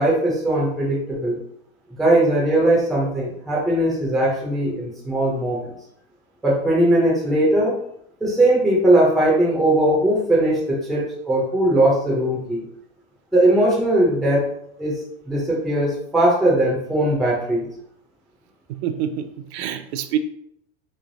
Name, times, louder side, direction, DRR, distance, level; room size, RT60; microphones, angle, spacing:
voice 1, 0.0-1.4 2.0-5.7 6.4-7.8 8.2-12.6 13.3-14.5 14.8-17.7, right 1 dB, ahead, -5 dB, 0.3 m, -19 dB
voice 2, 18.7-20.2, right 10 dB, 70° right, 8 dB, 0.5 m, -27 dB
3.2 x 3.1 x 2.5 m, 0.73 s
supercardioid pair, 160°, 34 cm